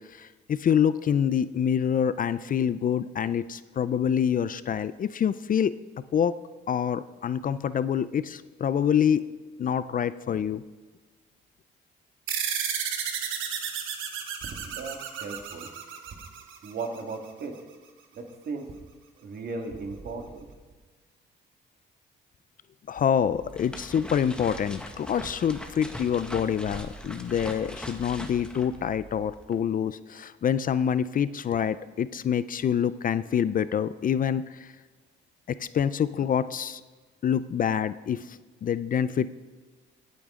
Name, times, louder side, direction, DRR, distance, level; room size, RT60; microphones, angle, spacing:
voice 1, 0.1-5.7 6.1-6.3 6.7-9.2 9.6-10.6 22.9-34.7 35.5-36.8 37.2-39.4, left 8 dB, 45° left, 15 dB, 0.5 m, -26 dB
sound 1, 12.3-17.1, right 8 dB, 90° right, 1.3 m, -33 dB
voice 2, 14.5-15.7 16.6-17.6 18.2-18.8 19.2-20.5, right 3 dB, 55° right, 4 dB, 1.9 m, -36 dB
sound 2, 23.3-29.6, equal, 5° left, 1.4 m, -41 dB
18.0 x 8.5 x 3.7 m, 1.3 s
cardioid pair, 90°, 20 cm